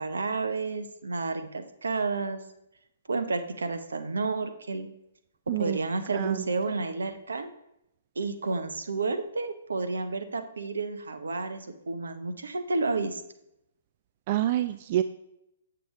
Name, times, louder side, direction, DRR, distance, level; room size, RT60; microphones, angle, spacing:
voice 1, 0.0-2.4 3.1-4.9 5.6-7.5 8.2-13.2, right 3 dB, 75° right, 9 dB, 0.7 m, -31 dB
voice 2, 5.5-5.8 6.1-6.4 14.3-15.0, right 13 dB, 40° right, 11 dB, 0.3 m, -27 dB
7.7 x 6.7 x 3.1 m, 0.83 s
figure-of-eight pair, 125°, 0 cm